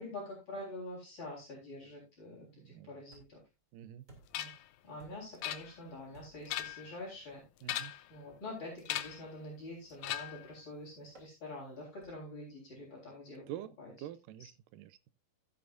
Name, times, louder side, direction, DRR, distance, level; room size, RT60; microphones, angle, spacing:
voice 1, 0.0-3.4 4.4-4.5 4.8-7.4 8.1-13.4 13.8-13.9, left 1 dB, 30° left, 4.5 m, -46 dB
voice 2, 2.5-2.9 3.7-4.0 7.6-7.9 13.5-15.1, right 12 dB, 80° right, 2.2 m, -47 dB
sound 1, 3.1-3.5 4.1-4.5 5.0-5.4 6.1-6.6 7.3-7.5 9.0-9.4 10.1-10.4 11.1-11.3 12.0-12.4, right 1 dB, 25° right, 2.5 m, -60 dB
sound 2, 4.3-4.7 5.4-6.0 6.4-6.9 7.6-8.1 8.9-9.3 10.0-10.5, left 13 dB, 90° left, 1.6 m, -39 dB
15.5 x 7.9 x 2.5 m
omnidirectional pair, 4.1 m